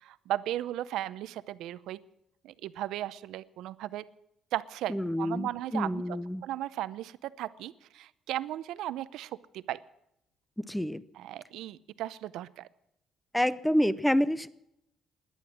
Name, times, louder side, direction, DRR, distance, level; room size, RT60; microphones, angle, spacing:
voice 1, 0.0-2.0 2.4-4.0 4.5-6.0 6.4-9.8 11.2-12.7, right 13 dB, 80° right, 16 dB, 0.6 m, -36 dB
voice 2, 4.9-6.4 10.6-11.0 13.3-14.5, equal, 5° left, 17 dB, 0.5 m, -28 dB
17.0 x 11.0 x 7.4 m, 0.80 s
cardioid pair, 165°, 0 cm